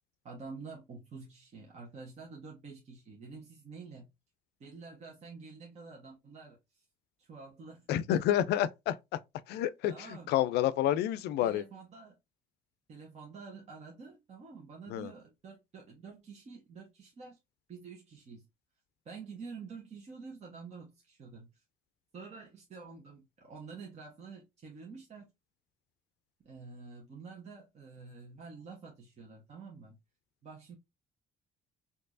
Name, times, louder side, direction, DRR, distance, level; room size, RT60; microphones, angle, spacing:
voice 1, 0.2-4.1 4.6-6.8 7.2-8.0 9.9-10.3 11.4-12.2 12.9-17.4 17.7-18.5 19.0-21.6 22.1-25.3 26.4-30.0 30.4-30.8, right 4 dB, 40° right, 1.1 m, -48 dB
voice 2, 7.9-9.0 9.5-11.6 14.9-15.1, left 11 dB, 75° left, 0.4 m, -29 dB
4.4 x 2.7 x 2.5 m
cardioid pair, 110°, 17 cm